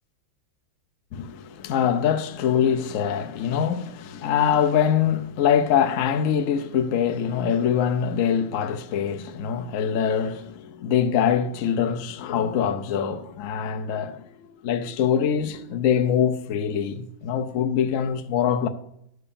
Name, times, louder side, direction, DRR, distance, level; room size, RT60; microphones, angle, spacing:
voice 1, 1.1-18.7, left 8 dB, 75° left, 0.7 m, -24 dB
11.0 x 4.8 x 6.9 m
omnidirectional pair, 2.3 m